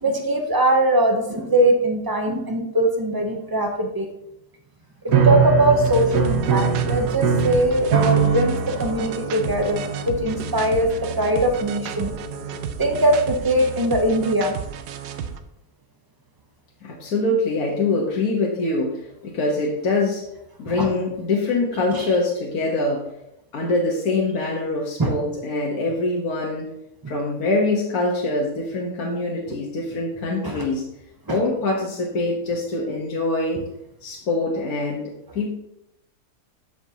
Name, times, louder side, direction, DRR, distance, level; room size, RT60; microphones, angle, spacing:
voice 1, 0.0-4.1 5.0-10.9 11.2-12.1 12.8-14.5 20.7-20.9 21.9-22.1 25.0-25.2 27.0-27.1 29.5-29.6 30.4-30.6 31.3-31.4, right 1 dB, 35° right, 3 dB, 0.3 m, -21 dB
sound 1, 5.1-13.4, right 6 dB, 70° right, 1.2 m, -24 dB
sound 2, 5.8-15.4, right 7 dB, 85° right, 1.2 m, -33 dB
voice 2, 16.8-18.9 19.2-20.2 20.6-23.0 23.5-26.7 27.1-30.8 31.3-33.6 34.0-35.5, left 2 dB, 65° left, -2 dB, 1.5 m, -24 dB
12.5 x 5.2 x 2.8 m, 0.82 s
omnidirectional pair, 1.7 m